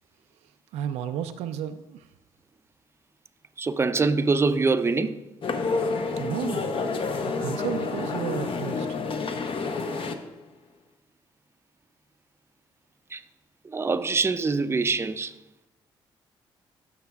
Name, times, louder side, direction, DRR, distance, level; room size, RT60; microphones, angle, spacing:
voice 1, 0.4-2.1 6.1-6.7 7.2-9.0, right 10 dB, 80° right, 0.4 m, -33 dB
voice 2, 3.6-5.2 13.1-13.2 13.6-15.4, right 4 dB, 25° right, 0.5 m, -24 dB
sound 1, 5.4-10.2, left 4 dB, 55° left, 0.8 m, -29 dB
13.0 x 5.9 x 2.3 m
supercardioid pair, 60°, 11 cm